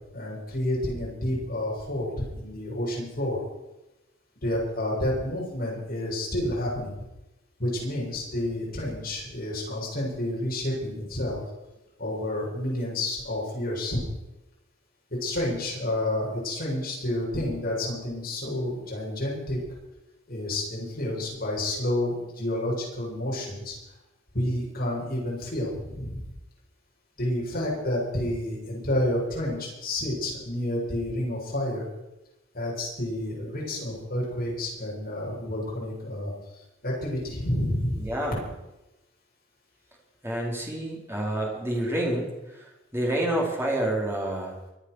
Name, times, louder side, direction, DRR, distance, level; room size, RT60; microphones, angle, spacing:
voice 1, 0.1-3.4 4.4-6.9 7.6-11.4 12.0-14.0 15.2-19.6 20.3-23.7 24.3-26.2 27.2-31.9 32.5-36.3 36.8-38.0, left 1 dB, 45° left, -4 dB, 7.3 m, -29 dB
voice 2, 38.0-38.5 40.2-44.6, right 1 dB, 10° right, -2 dB, 4.2 m, -28 dB
24.0 x 8.7 x 6.5 m, 0.99 s
head